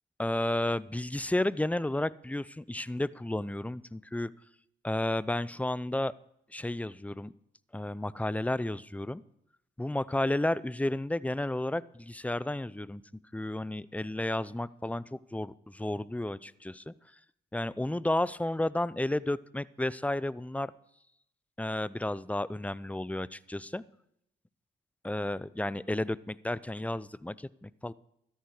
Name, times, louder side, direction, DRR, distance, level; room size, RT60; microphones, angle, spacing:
voice 1, 0.2-4.3 4.8-6.1 6.5-7.3 7.7-9.2 9.8-13.0 13.3-16.9 17.5-20.7 21.6-23.8 25.0-27.9, left 1 dB, 5° left, 20 dB, 0.5 m, -32 dB
13.0 x 10.5 x 4.9 m, 0.75 s
supercardioid pair, 45°, 21 cm